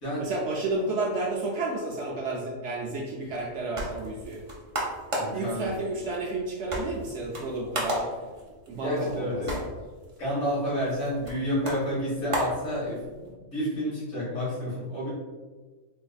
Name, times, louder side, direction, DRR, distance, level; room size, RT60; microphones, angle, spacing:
voice 1, 0.2-4.4 5.3-8.0 8.7-9.6, right 2 dB, 65° right, -2 dB, 0.8 m, -31 dB
sound 1, 3.4-13.3, right 1 dB, 40° right, 0.4 m, -36 dB
voice 2, 5.2-5.7 8.8-9.6 10.2-15.1, equal, 60° left, -8 dB, 1.9 m, -30 dB
3.8 x 2.6 x 2.3 m, 1.3 s
omnidirectional pair, 1.4 m